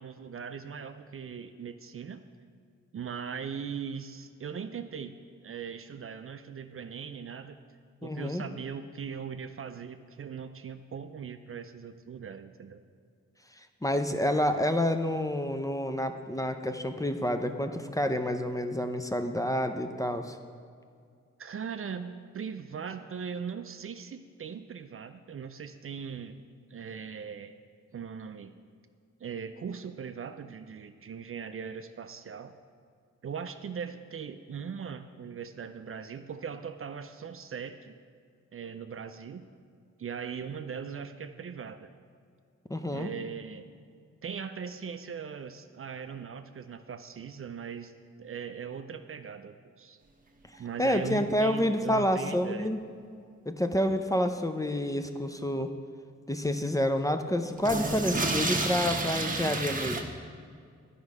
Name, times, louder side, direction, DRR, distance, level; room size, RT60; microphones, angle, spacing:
voice 1, 0.0-2.2 2.9-5.2 5.4-7.6 8.0-12.8 21.4-26.4 26.7-27.6 27.9-28.5 29.2-32.5 33.2-38.0 38.5-39.5 40.0-41.9 42.9-43.7 44.2-47.9 48.2-50.0 50.6-52.7, right 6 dB, 50° right, 9 dB, 0.5 m, -40 dB
voice 2, 8.0-8.4 13.8-20.4 42.7-43.1 50.8-52.8 53.5-55.7 56.3-60.1, left 1 dB, 10° left, 7 dB, 0.6 m, -28 dB
sound 1, 50.5-50.6 50.9-51.0 51.2-51.3 51.9-52.0 57.5-60.0, right 2 dB, 30° right, 1.0 m, -30 dB
10.0 x 5.4 x 4.8 m, 2.2 s
cardioid pair, 55°, 29 cm